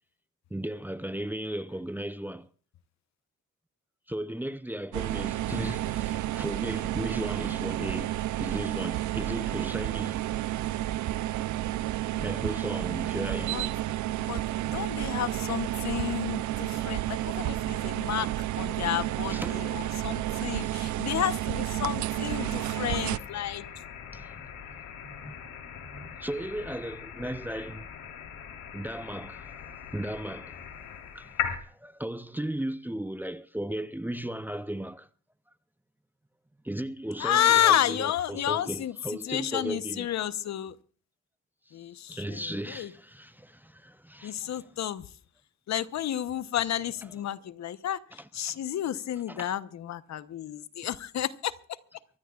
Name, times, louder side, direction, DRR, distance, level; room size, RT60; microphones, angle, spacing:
voice 1, 0.5-2.5 4.1-10.2 12.2-13.8 19.3-21.1 22.9-23.1 24.1-24.8 25.0-25.4 25.8-27.9 28.7-29.6 29.9-30.7 31.1-31.3 31.7-35.1 36.6-40.1 42.1-44.7 47.1-47.2 48.2-48.6 49.3-49.5, right 1 dB, 5° right, 0.6 m, -36 dB
sound 1, 4.9-23.2, right 14 dB, 75° right, 0.6 m, -31 dB
voice 2, 14.3-18.3 18.6-23.7 37.2-38.9 39.2-40.7 41.7-42.4 42.7-42.9 44.2-45.0 45.7-48.0 48.3-51.5, left 11 dB, 65° left, 1.0 m, -30 dB
sound 2, 22.3-31.6, left 8 dB, 80° left, 3.7 m, -40 dB
24.0 x 16.0 x 2.4 m
cardioid pair, 90°, 30 cm